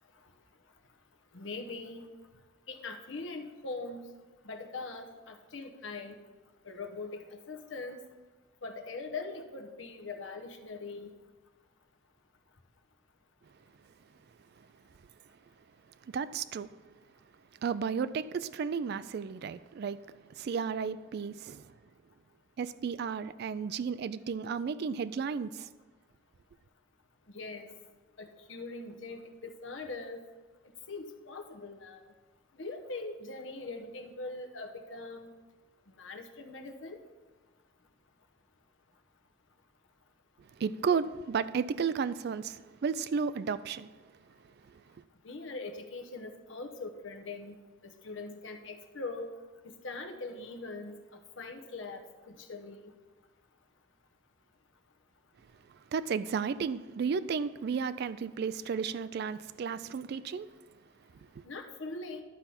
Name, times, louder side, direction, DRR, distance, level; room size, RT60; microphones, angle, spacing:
voice 1, 1.3-2.1 2.7-4.0 4.4-6.1 6.6-8.0 8.6-11.1 27.3-27.7 28.2-30.2 30.9-32.0 32.6-35.3 36.0-37.0 45.2-47.6 47.8-49.3 49.6-51.0 51.4-52.9 61.4-62.2, left 3 dB, 70° left, 0.9 m, -41 dB
voice 2, 16.1-16.7 17.6-20.0 20.4-21.7 22.6-25.7 40.6-43.9 44.7-44.8 55.9-60.5 61.4-61.5, right 6 dB, 55° right, 0.3 m, -33 dB
11.5 x 4.0 x 5.7 m
head